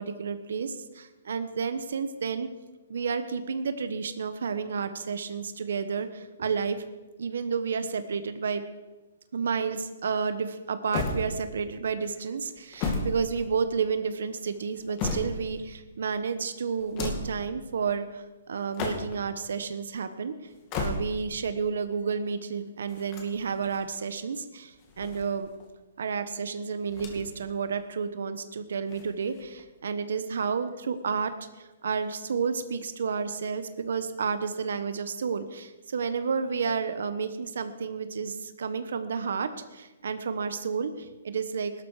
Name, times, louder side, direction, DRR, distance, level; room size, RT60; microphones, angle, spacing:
voice 1, 0.0-2.5 2.9-6.8 7.2-8.6 9.3-20.3 20.8-25.5 26.0-41.7, right 5 dB, 70° right, 11 dB, 1.1 m, -31 dB
sound 1, 10.9-11.7 12.5-13.9 14.6-15.6 16.8-17.4 18.6-19.3 20.5-21.4 22.9-23.8 24.7-25.7 26.9-27.5 27.8-27.9 28.9-29.6, left 3 dB, 25° left, 2.1 m, -34 dB
17.0 x 12.0 x 4.9 m, 1.2 s
hypercardioid pair, 165°, 0 cm